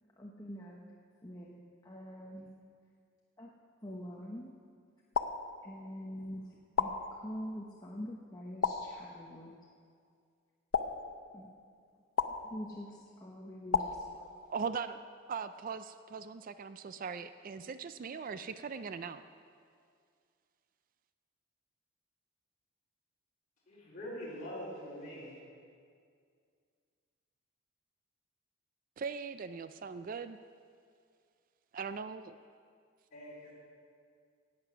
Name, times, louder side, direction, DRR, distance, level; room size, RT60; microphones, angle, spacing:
voice 1, 0.2-0.8 1.2-2.5 3.4-3.5 3.8-4.5 5.6-6.4 6.8-9.6 11.3-11.5 12.5-14.3, equal, 15° left, -2 dB, 0.9 m, -45 dB
sound 1, 5.1-6.1 6.8-7.6 8.6-9.5 10.7-11.6 12.2-13.0 13.7-14.7, left 5 dB, 75° left, 0.7 m, -35 dB
voice 2, 14.5-15.0 15.3-19.2 29.0-30.4 31.7-32.4, right 5 dB, 40° right, 12 dB, 0.3 m, -40 dB
voice 3, 23.7-25.4 33.1-33.5, equal, 40° left, -6 dB, 4.2 m, -44 dB
17.0 x 7.8 x 5.9 m, 2.2 s
head